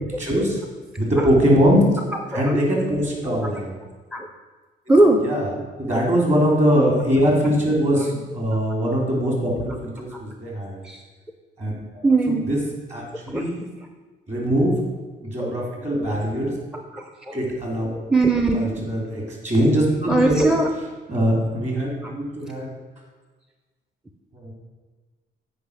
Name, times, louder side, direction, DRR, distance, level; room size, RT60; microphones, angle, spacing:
voice 1, 0.2-0.6 1.0-1.8 2.3-3.8 5.2-5.4 5.8-10.8 11.6-12.1 12.5-12.6 12.9-13.6 14.3-14.8 15.2-16.5 17.3-17.9 18.5-20.5 21.1-22.7 24.3-24.5, equal, 35° right, -1 dB, 3.1 m, -22 dB
voice 2, 2.1-2.6 3.2-3.3 4.1-4.3 4.9-5.3 7.9-8.1 10.1-10.2 10.8-11.0 12.0-12.5 13.3-13.5 15.4-15.5 16.7-17.4 18.1-19.0 20.1-20.7 22.0-22.1, right 2 dB, 5° right, 4 dB, 0.5 m, -21 dB
8.5 x 5.0 x 6.6 m, 1.3 s
cardioid pair, 105°, 20 cm